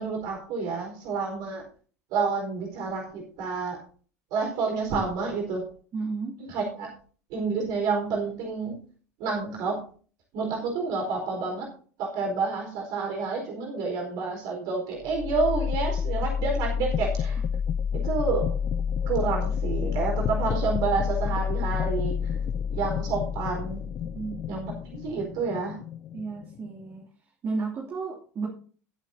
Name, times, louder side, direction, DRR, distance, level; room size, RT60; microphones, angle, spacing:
voice 1, 0.0-1.6 2.1-3.8 4.3-5.6 6.4-6.9 7.3-8.8 9.2-9.8 10.3-11.7 12.0-17.4 18.0-18.4 19.1-22.4 22.7-23.8 24.5-25.8, right 4 dB, 55° right, 0 dB, 4.4 m, -29 dB
voice 2, 5.9-6.4 24.0-24.4 26.1-27.0 27.4-28.5, right 4 dB, 35° right, -2 dB, 2.7 m, -33 dB
sound 1, 15.0-26.9, left 7 dB, 40° left, 0.5 m, -29 dB
19.0 x 8.2 x 2.7 m, 0.41 s
figure-of-eight pair, 75°, 8 cm